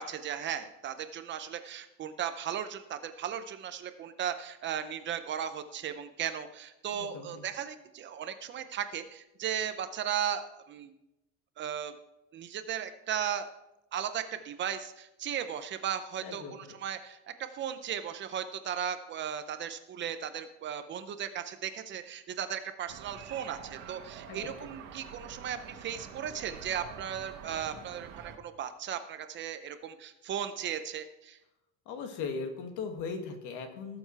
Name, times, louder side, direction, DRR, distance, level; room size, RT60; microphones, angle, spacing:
voice 1, 0.0-10.9 11.6-11.9 12.3-13.5 13.9-31.4, right 9 dB, 35° right, 10 dB, 0.6 m, -36 dB
voice 2, 6.9-7.4 16.2-16.6 24.3-24.6 31.9-34.0, left 5 dB, 60° left, 5 dB, 2.1 m, -38 dB
sound 1, 22.9-28.4, right 7 dB, 75° right, 1.7 m, -47 dB
19.0 x 7.0 x 4.6 m, 0.90 s
cardioid pair, 175°, 34 cm